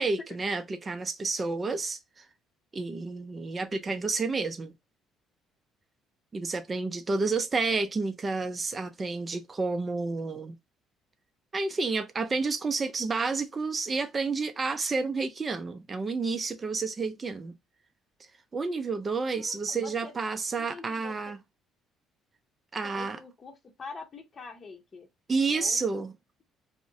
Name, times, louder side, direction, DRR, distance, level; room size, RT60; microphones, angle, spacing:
voice 1, 0.0-2.2 2.7-4.7 6.3-10.5 11.5-17.5 18.5-21.4 22.7-23.2 25.3-26.1, right 4 dB, 30° right, 0.4 m, -30 dB
voice 2, 19.3-20.1 20.6-21.2 22.8-25.1 25.5-25.9, left 4 dB, 35° left, 0.8 m, -45 dB
2.5 x 2.1 x 3.6 m
cardioid pair, 95°, 0 cm